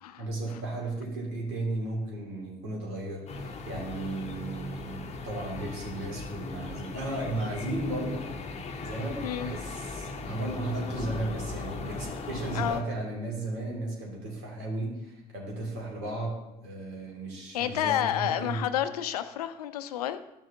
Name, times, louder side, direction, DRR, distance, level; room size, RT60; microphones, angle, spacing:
voice 1, 0.2-18.6, right 2 dB, 55° right, -2 dB, 2.3 m, -35 dB
sound 1, 3.3-12.8, left 3 dB, 35° left, 0.8 m, -38 dB
voice 2, 17.5-20.2, left 11 dB, 70° left, 12 dB, 0.5 m, -30 dB
11.5 x 6.3 x 2.7 m, 0.89 s
figure-of-eight pair, 60°, 20 cm